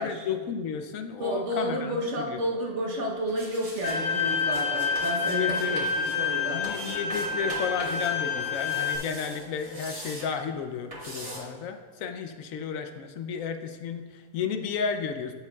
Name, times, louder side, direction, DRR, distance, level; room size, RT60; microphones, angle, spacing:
voice 1, 0.0-2.0 2.3-2.4 5.3-5.9 6.5-15.3, left 6 dB, 75° left, 7 dB, 1.0 m, -33 dB
voice 2, 1.2-6.6, equal, 55° right, 0 dB, 1.3 m, -31 dB
sound 1, 3.3-4.0 4.5-6.2 6.6-8.1 8.4-10.3 10.9-11.4, right 1 dB, 25° right, 1.7 m, -41 dB
Bowed string instrument, 3.8-9.0, left 5 dB, 35° left, 0.6 m, -28 dB
14.0 x 5.6 x 2.3 m, 1.5 s
omnidirectional pair, 1.5 m